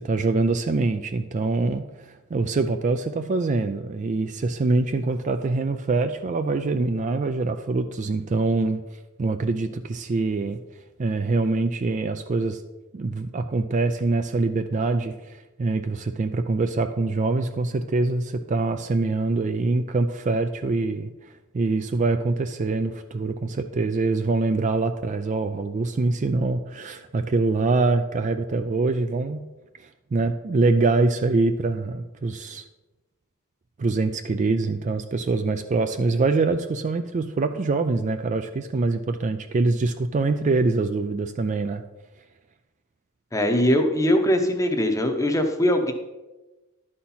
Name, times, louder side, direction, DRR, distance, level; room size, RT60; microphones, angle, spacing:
voice 1, 0.0-8.8 9.2-10.6 11.0-12.6 12.9-21.1 21.5-29.4 29.8-32.6 33.8-41.8, right 3 dB, 35° right, 8 dB, 0.3 m, -24 dB
voice 2, 43.3-45.9, left 1 dB, 15° left, 5 dB, 0.8 m, -21 dB
11.5 x 4.3 x 5.5 m, 1.1 s
head